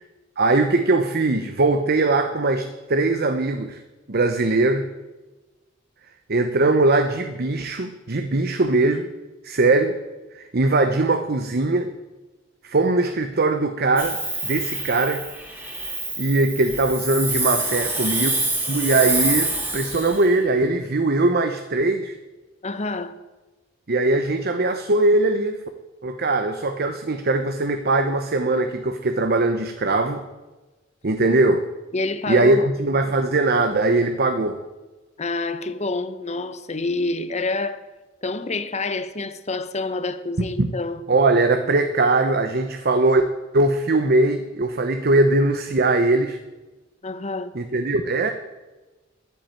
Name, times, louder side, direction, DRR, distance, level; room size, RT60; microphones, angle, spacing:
voice 1, 0.4-3.8 4.1-4.9 6.3-9.1 9.4-9.9 10.3-11.9 12.6-15.2 16.2-18.3 18.7-22.1 23.9-25.6 26.0-30.2 31.0-31.6 32.3-34.6 40.6-40.7 41.1-43.2 43.5-46.4 47.5-48.3, right 2 dB, 55° right, 0.8 m, -20 dB
Hiss, 14.0-20.3, right 2 dB, 10° right, 2.3 m, -26 dB
voice 2, 22.6-23.1 31.9-32.7 35.2-37.8 38.2-41.0 47.0-47.5, left 3 dB, 35° left, 0.9 m, -27 dB
11.0 x 9.3 x 9.0 m
head